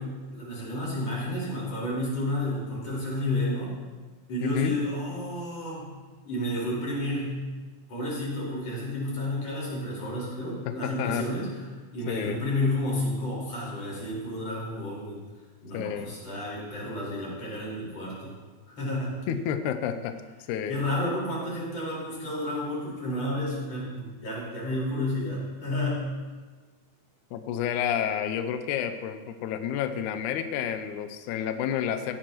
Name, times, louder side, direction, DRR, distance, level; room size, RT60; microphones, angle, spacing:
voice 1, 0.0-3.7 4.3-5.9 6.3-7.4 7.9-11.5 11.9-15.2 15.6-18.3 18.8-19.2 20.7-26.1, left 1 dB, 40° left, -6 dB, 5.4 m, -31 dB
voice 2, 4.4-4.7 10.7-11.3 12.1-12.4 15.7-16.1 19.3-20.2 20.5-20.8 27.3-32.2, left 9 dB, 90° left, 9 dB, 1.7 m, -30 dB
16.5 x 12.0 x 3.0 m, 1.4 s
omnidirectional pair, 4.3 m